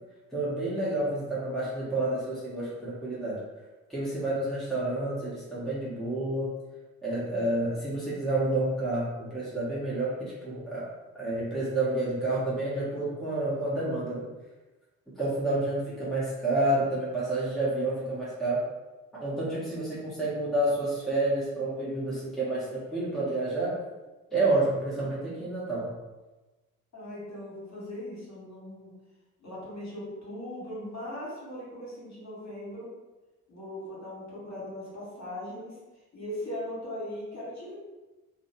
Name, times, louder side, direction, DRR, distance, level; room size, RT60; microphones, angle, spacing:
voice 1, 0.3-3.4 3.9-6.5 7.0-10.9 11.1-14.3 15.2-18.6 19.1-23.7 24.3-25.9, right 2 dB, ahead, -7 dB, 0.9 m, -29 dB
voice 2, 26.9-28.9 29.4-32.9 33.5-35.8 36.1-37.7, left 1 dB, 40° left, -7 dB, 1.3 m, -39 dB
2.5 x 2.0 x 2.6 m, 1.1 s
figure-of-eight pair, 40°, 41 cm